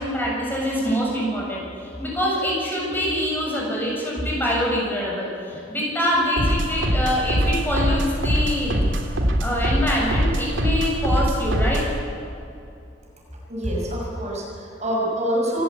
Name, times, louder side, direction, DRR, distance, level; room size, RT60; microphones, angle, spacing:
voice 1, 0.0-8.8 9.4-11.8, equal, 10° left, -4 dB, 7.3 m, -24 dB
sound 1, 6.4-12.0, equal, 75° right, 2.9 m, -23 dB
voice 2, 13.5-15.6, equal, 35° right, -2 dB, 6.3 m, -26 dB
27.0 x 16.5 x 8.6 m, 2.6 s
head